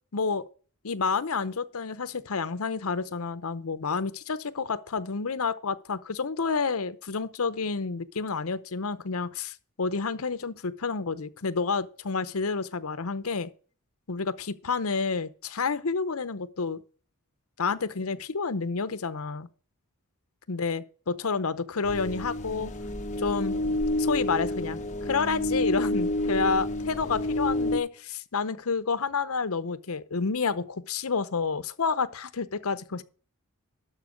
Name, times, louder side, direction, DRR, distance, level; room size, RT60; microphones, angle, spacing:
voice 1, 0.1-0.5 0.8-13.5 14.1-16.8 17.6-19.5 20.5-22.7 23.2-23.6 24.0-33.0, left 4 dB, 70° left, 0.8 m, -29 dB
sound 1, 21.8-27.8, left 1 dB, 35° left, 1.1 m, -29 dB
12.5 x 4.6 x 6.4 m
head